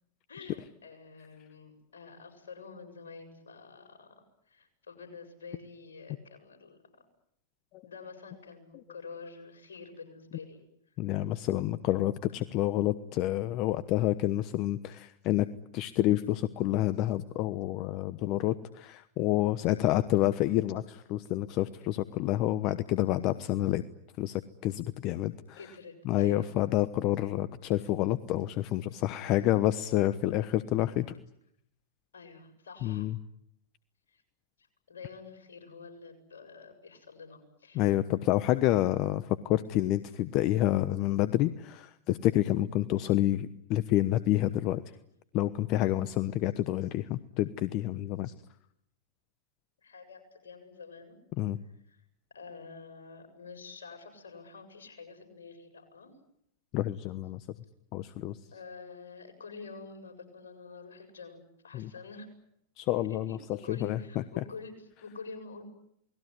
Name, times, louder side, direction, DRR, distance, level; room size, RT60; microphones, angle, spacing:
voice 1, 0.3-7.0 7.8-10.6 19.7-19.9 25.6-26.5 29.2-29.4 32.1-33.1 34.1-34.2 34.9-38.0 49.8-51.2 51.6-52.0 52.3-56.1 58.5-62.3 63.1-65.7, left 4 dB, 80° left, 5 dB, 7.5 m, -48 dB
voice 2, 11.0-15.5 15.7-23.8 24.2-25.6 26.0-31.2 32.8-33.1 37.7-44.8 45.3-48.3 51.4-51.6 56.7-57.4 57.9-58.4 61.7-61.9 62.8-64.4, left 14 dB, 45° left, 14 dB, 1.1 m, -28 dB
28.5 x 20.5 x 9.9 m, 0.76 s
hypercardioid pair, 100°, 0 cm